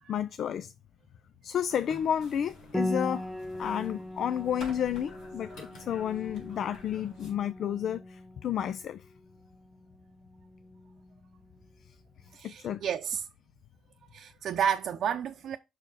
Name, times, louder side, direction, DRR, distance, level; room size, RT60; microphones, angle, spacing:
voice 1, 0.1-0.7 1.4-3.3 3.6-9.0 12.4-12.8, left 9 dB, 65° left, 0.5 m, -31 dB
sound 1, 1.7-7.3, left 2 dB, 85° left, 3.9 m, -50 dB
Piano, 2.7-12.1, left 1 dB, ahead, 0.7 m, -40 dB
voice 2, 12.3-13.2 14.1-15.6, right 8 dB, 70° right, 0.6 m, -31 dB
5.9 x 4.6 x 4.6 m
cardioid pair, 90°, 0 cm